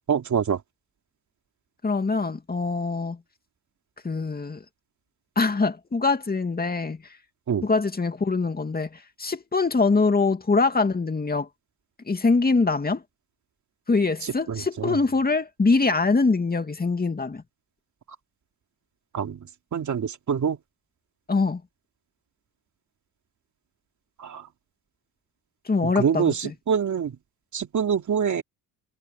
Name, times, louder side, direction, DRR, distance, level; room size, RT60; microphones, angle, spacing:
voice 1, 0.1-0.6 7.5-7.7 14.2-15.0 19.1-20.6 24.2-24.5 25.8-27.2 27.5-28.4, right 7 dB, 50° right, 2.9 m, -26 dB
voice 2, 1.8-3.2 4.0-4.6 5.4-7.0 7.6-11.5 12.1-13.0 13.9-17.4 21.3-21.6 25.7-26.5, left 3 dB, 25° left, 2.5 m, -23 dB
cardioid pair, 85°, 38 cm